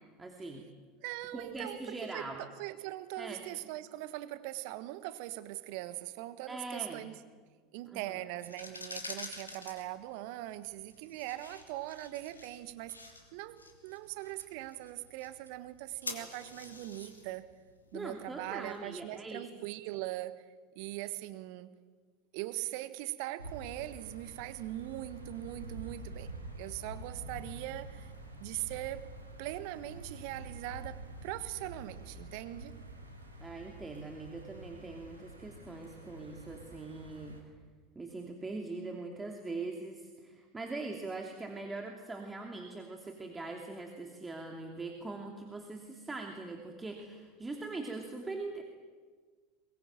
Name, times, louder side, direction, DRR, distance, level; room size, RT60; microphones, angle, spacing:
voice 1, 0.2-0.7 1.3-2.4 3.2-3.4 6.5-7.1 7.9-8.1 17.9-19.5 33.4-37.4 37.9-48.6, right 3 dB, 15° right, 2 dB, 2.9 m, -42 dB
voice 2, 1.0-1.8 2.1-7.1 7.7-17.5 17.9-20.4 20.7-21.7 22.3-28.1 28.4-29.1 29.4-32.7, right 16 dB, 55° right, 13 dB, 1.4 m, -41 dB
sound 1, 8.3-19.2, left 3 dB, 85° left, 3.0 m, -48 dB
sound 2, 23.4-37.4, right 1 dB, 85° right, 4.7 m, -47 dB
23.5 x 22.0 x 9.0 m, 1.5 s
figure-of-eight pair, 75°, 0 cm